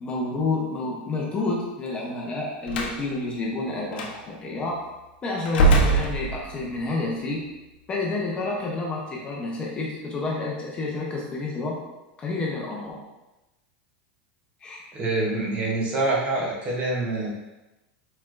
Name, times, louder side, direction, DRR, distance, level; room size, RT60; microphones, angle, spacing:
voice 1, 0.0-4.8 5.2-7.4 7.9-11.8 12.2-13.0 14.6-14.8, left 3 dB, 20° left, -3 dB, 0.7 m, -29 dB
Slam, 2.7-3.0 3.9-4.1 5.5-6.7, right 2 dB, 80° left, 0.8 m, -21 dB
voice 2, 14.9-17.3, right 2 dB, 25° right, -3 dB, 0.8 m, -26 dB
4.4 x 4.1 x 2.5 m, 1.0 s
supercardioid pair, 150°, 5 cm